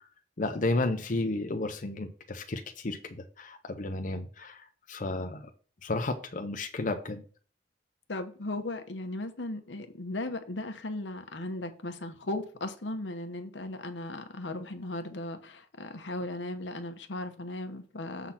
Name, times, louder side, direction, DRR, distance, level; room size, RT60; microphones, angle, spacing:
voice 1, 0.4-5.5 5.8-7.2, left 2 dB, 45° left, 0.7 m, -32 dB
voice 2, 8.1-18.3, left 2 dB, 90° left, 1.1 m, -37 dB
7.4 x 4.0 x 5.8 m
head